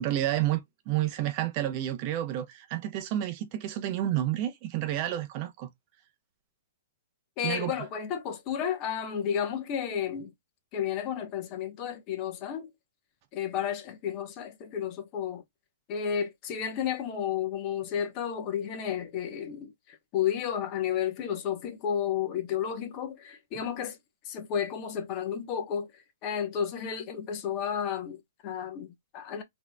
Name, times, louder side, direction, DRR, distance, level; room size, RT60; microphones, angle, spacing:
voice 1, 0.0-5.7 7.4-7.7, right 13 dB, 35° right, 0.7 m, -30 dB
voice 2, 7.4-10.3 10.7-12.7 13.3-15.4 15.9-24.0 24.3-29.4, left 8 dB, 30° left, 1.0 m, -32 dB
3.9 x 2.9 x 2.2 m
hypercardioid pair, 145°, 0 cm